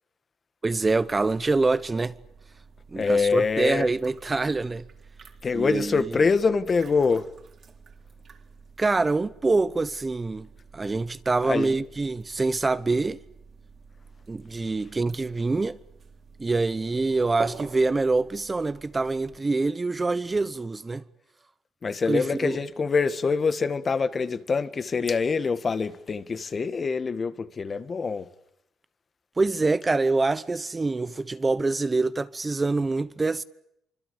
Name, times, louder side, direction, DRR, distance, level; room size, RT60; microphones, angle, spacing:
voice 1, 0.6-2.1 2.9-4.8 5.5-6.0 8.8-10.5 10.7-13.2 14.3-15.8 16.4-21.0 22.1-22.6 29.4-33.4, right 3 dB, 25° right, 1.0 m, -25 dB
sound 1, 0.8-19.4, right 5 dB, 50° right, 4.0 m, -48 dB
voice 2, 2.9-3.9 5.4-7.3 11.4-11.7 21.8-28.3, left 5 dB, 40° left, 1.7 m, -25 dB
26.0 x 25.0 x 8.6 m
cardioid pair, 90°, 0 cm